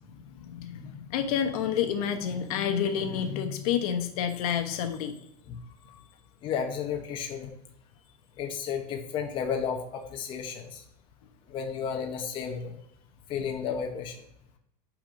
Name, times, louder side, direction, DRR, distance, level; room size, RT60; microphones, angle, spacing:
voice 1, 0.0-5.2, left 8 dB, 75° left, 6 dB, 1.1 m, -29 dB
voice 2, 6.4-7.5 8.4-10.8 11.5-12.8 13.3-14.2, left 7 dB, 25° left, 3 dB, 0.8 m, -32 dB
6.0 x 5.1 x 5.2 m, 0.78 s
supercardioid pair, 175°, 19 cm